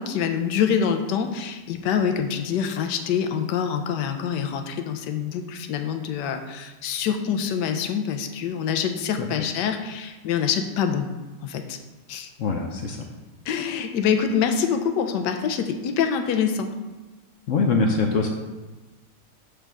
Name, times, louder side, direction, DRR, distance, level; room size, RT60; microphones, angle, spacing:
voice 1, 0.0-11.1 11.4-11.8 12.1-12.3 13.4-16.7, left 7 dB, 85° left, 7 dB, 1.3 m, -25 dB
voice 2, 12.4-13.0 17.5-18.3, left 4 dB, 65° left, 3 dB, 0.8 m, -23 dB
6.5 x 3.4 x 6.0 m, 1.2 s
omnidirectional pair, 1.8 m